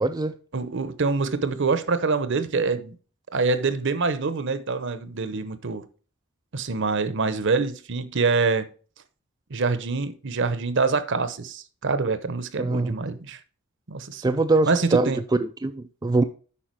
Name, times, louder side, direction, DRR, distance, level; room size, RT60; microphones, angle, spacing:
voice 1, 0.0-0.3 12.6-12.9 14.2-16.2, right 2 dB, 20° right, 0.3 m, -23 dB
voice 2, 0.5-2.9 3.3-5.8 6.5-8.7 9.5-13.4 13.9-14.4 14.7-15.2, right 4 dB, 55° right, 0.8 m, -25 dB
8.6 x 5.7 x 4.6 m
head